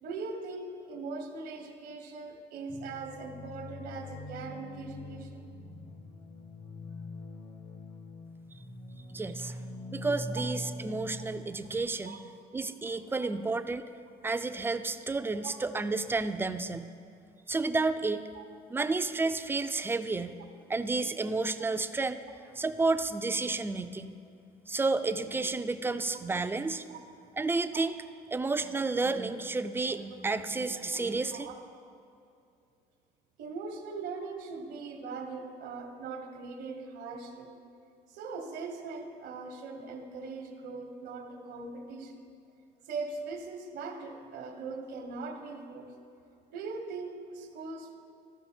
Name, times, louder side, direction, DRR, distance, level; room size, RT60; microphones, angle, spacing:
voice 1, 0.0-5.5 9.3-9.4 10.3-10.4 12.1-12.2 13.2-13.3 18.3-18.4 21.2-21.3 26.9-27.0 31.3-31.6 33.4-37.6 38.1-42.2 42.9-45.9 46.5-48.0, right 4 dB, 80° right, 5 dB, 1.0 m, -40 dB
sound 1, 2.7-11.8, left 1 dB, 45° left, 0.9 m, -43 dB
voice 2, 9.1-9.6 9.9-12.2 12.5-13.8 14.2-16.9 17.5-18.2 18.7-20.4 20.7-22.2 22.6-24.1 24.7-26.8 27.4-27.9 28.3-31.5, right 3 dB, 15° right, 10 dB, 0.3 m, -31 dB
13.0 x 5.1 x 4.3 m, 2.5 s
cardioid pair, 110°, 17 cm